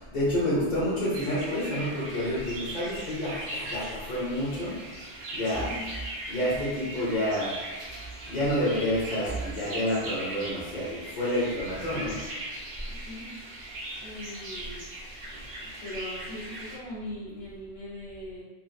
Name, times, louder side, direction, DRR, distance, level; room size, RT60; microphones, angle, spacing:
voice 1, 0.1-4.8 5.3-5.7 6.3-7.5 8.3-12.1, equal, 35° left, -8 dB, 1.2 m, -28 dB
sound 1, 1.1-16.8, right 1 dB, 55° right, 0.7 m, -39 dB
voice 2, 12.9-13.4 14.0-14.8 15.6-18.4, left 1 dB, 70° left, -8 dB, 1.3 m, -40 dB
3.1 x 2.7 x 2.3 m, 1.3 s
omnidirectional pair, 1.3 m